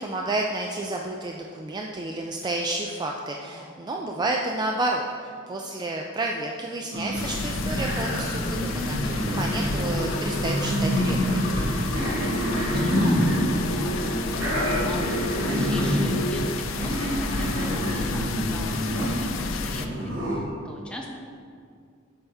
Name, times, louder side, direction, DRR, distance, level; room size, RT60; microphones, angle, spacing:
voice 1, 0.0-11.5, right 2 dB, 20° right, 0 dB, 0.3 m, -30 dB
sound 1, 6.9-20.3, equal, 80° right, 1.8 m, -27 dB
sound 2, 7.2-19.9, left 5 dB, 70° left, 0.4 m, -33 dB
sound 3, 8.8-16.5, right 1 dB, 55° left, 1.3 m, -33 dB
voice 2, 11.6-12.3 12.5-14.2 14.8-21.1, left 1 dB, 5° left, -1 dB, 0.8 m, -41 dB
7.8 x 5.6 x 3.4 m, 2.2 s
head